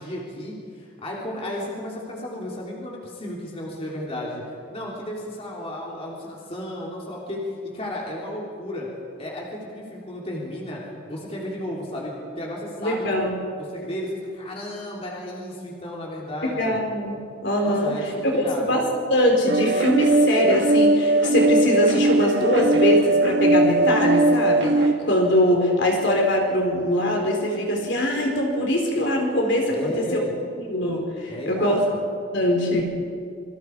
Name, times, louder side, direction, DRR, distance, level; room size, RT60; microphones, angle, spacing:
voice 1, 0.0-4.4 4.7-7.4 7.7-8.9 9.2-16.8 17.6-18.8 29.7-30.3 31.3-32.0, left 1 dB, 30° left, -3 dB, 3.5 m, -33 dB
voice 2, 12.8-13.4 16.4-17.2 17.4-17.9 18.2-18.8 19.1-30.2 30.6-31.8 32.3-32.8, equal, 60° left, 0 dB, 4.2 m, -22 dB
sound 1, 19.5-24.9, right 2 dB, 55° right, 1.7 m, -19 dB
27.5 x 23.5 x 4.8 m, 2.4 s
head